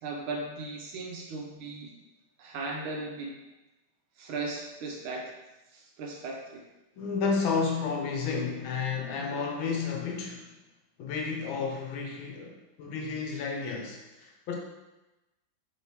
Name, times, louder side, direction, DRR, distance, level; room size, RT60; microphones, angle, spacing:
voice 1, 0.0-1.9 2.4-3.3 4.2-5.3 5.7-6.6, right 3 dB, 85° right, -1 dB, 1.6 m, -37 dB
voice 2, 6.9-10.5 11.0-14.6, left 5 dB, 80° left, 0 dB, 1.5 m, -31 dB
4.0 x 3.3 x 2.8 m, 1.0 s
omnidirectional pair, 2.2 m